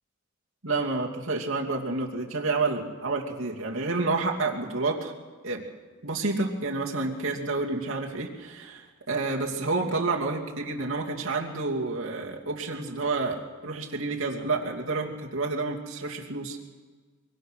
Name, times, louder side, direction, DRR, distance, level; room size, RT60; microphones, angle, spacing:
voice 1, 0.6-5.1 5.4-5.6 6.0-16.6, right 3 dB, 75° right, 0 dB, 2.8 m, -29 dB
24.0 x 23.5 x 6.5 m, 1.5 s
head